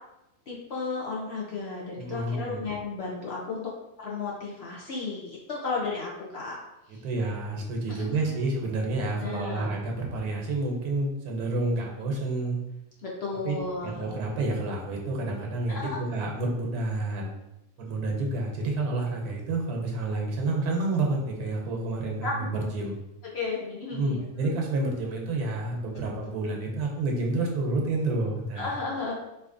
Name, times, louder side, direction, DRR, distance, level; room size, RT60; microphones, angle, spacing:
voice 1, 0.5-3.7 4.0-6.6 6.9-7.0 7.9-8.4 9.2-9.7 13.0-14.1 15.7-16.0 22.2-22.5 23.3-24.3 28.6-29.1, left 4 dB, 55° left, -4 dB, 0.8 m, -34 dB
voice 2, 2.0-2.6 7.0-12.6 13.4-13.6 13.8-17.4 17.8-22.9 23.9-28.7, right 2 dB, 80° right, 0 dB, 1.2 m, -29 dB
4.2 x 2.8 x 2.6 m, 0.90 s
omnidirectional pair, 1.6 m